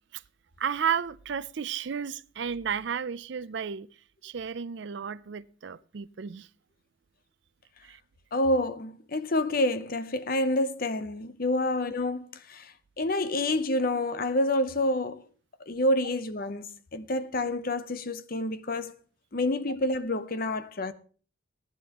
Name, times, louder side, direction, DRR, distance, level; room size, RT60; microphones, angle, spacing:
voice 1, 0.6-3.9 4.2-6.5 7.8-8.0, right 7 dB, 55° right, 0.4 m, -33 dB
voice 2, 8.3-15.3 15.7-18.9 19.3-20.9, left 1 dB, 45° left, 0.7 m, -28 dB
18.0 x 10.0 x 3.0 m
head